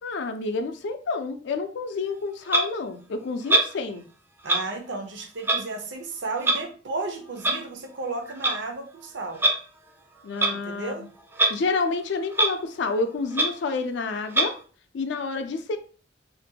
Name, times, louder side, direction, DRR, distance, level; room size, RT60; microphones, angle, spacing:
voice 1, 0.0-4.0 10.2-11.1 11.5-14.6 14.9-15.8, left 3 dB, 70° left, 8 dB, 0.4 m, -29 dB
Clock, 2.5-2.6 3.5-3.7 4.4-4.6 5.4-5.6 6.4-6.6 7.4-7.6 8.3-8.5 9.3-9.6 10.4-10.6 11.3-11.5 11.9-12.0 12.3-12.5 12.9-13.0 13.3-13.5 14.3-14.5, right 2 dB, 10° right, 0.3 m, -22 dB
voice 2, 4.4-9.4 10.5-11.1, right 3 dB, 70° right, 4 dB, 0.5 m, -33 dB
2.5 x 2.2 x 2.7 m, 0.40 s
head